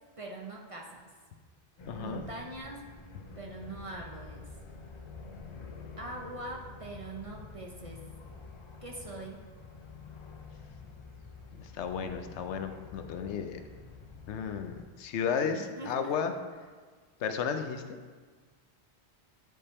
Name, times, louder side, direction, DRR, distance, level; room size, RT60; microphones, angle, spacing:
voice 1, 0.2-1.1 1.9-2.8 3.4-4.5 6.0-8.1 8.8-9.4 15.4-16.1, right 2 dB, 35° right, 0 dB, 0.6 m, -42 dB
sound 1, 1.8-14.8, left 4 dB, 35° left, 0.5 m, -48 dB
voice 2, 1.9-2.2 11.6-13.6 14.3-16.3 17.2-17.8, left 6 dB, 85° left, 7 dB, 0.9 m, -33 dB
9.8 x 3.4 x 4.2 m, 1.5 s
omnidirectional pair, 1.1 m